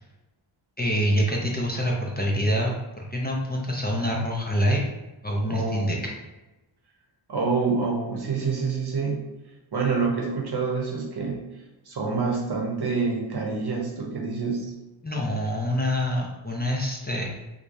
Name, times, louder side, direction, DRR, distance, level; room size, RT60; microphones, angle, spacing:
voice 1, 0.8-4.8 5.2-6.0 15.0-17.2, equal, 20° left, -2 dB, 0.5 m, -26 dB
voice 2, 5.5-6.0 7.3-9.2 9.7-11.5 11.9-14.7, right 4 dB, 50° right, -1 dB, 0.9 m, -27 dB
4.7 x 2.3 x 2.6 m, 1.1 s
wide cardioid pair, 80°, 49 cm